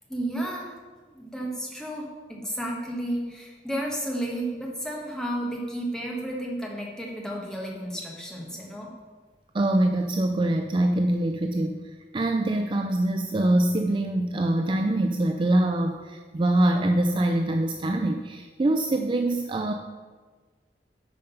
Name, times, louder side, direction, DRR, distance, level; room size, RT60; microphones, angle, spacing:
voice 1, 0.1-0.8 1.1-8.9, right 1 dB, 5° left, -2 dB, 1.4 m, -32 dB
voice 2, 9.5-11.8 12.1-19.7, right 1 dB, 30° right, 5 dB, 0.4 m, -24 dB
9.2 x 5.1 x 5.7 m, 1.4 s
head